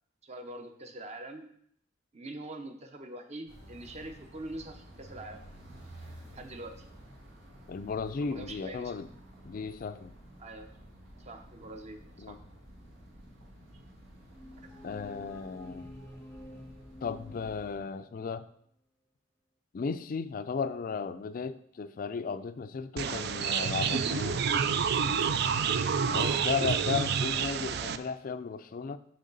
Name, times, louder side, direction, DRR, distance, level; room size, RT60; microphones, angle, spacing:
voice 1, 0.2-1.5 2.1-5.4 6.3-6.9 8.2-8.9 10.4-10.7 11.2-12.4 26.1-26.4, right 2 dB, 35° right, 6 dB, 0.8 m, -43 dB
sound 1, 3.5-17.8, equal, 85° right, 1.9 m, -52 dB
voice 2, 7.7-9.1 9.4-10.1 12.2-12.4 14.8-15.9 17.0-18.5 19.7-24.5 26.1-29.0, left 5 dB, 45° left, 12 dB, 0.3 m, -35 dB
sound 2, 14.3-18.1, left 1 dB, 10° left, 0.6 m, -49 dB
sound 3, 23.0-28.0, right 6 dB, 60° right, 0.4 m, -28 dB
6.4 x 6.3 x 3.9 m, 0.67 s
head